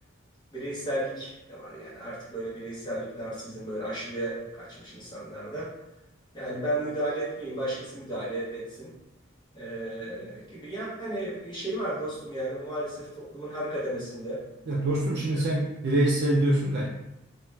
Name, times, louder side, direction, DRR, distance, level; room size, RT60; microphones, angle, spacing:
voice 1, 0.5-5.7 6.3-8.9 9.5-14.4, right 1 dB, 20° left, -8 dB, 0.8 m, -34 dB
voice 2, 14.7-16.8, right 1 dB, 50° right, -4 dB, 0.3 m, -24 dB
2.3 x 2.1 x 3.1 m, 0.93 s
head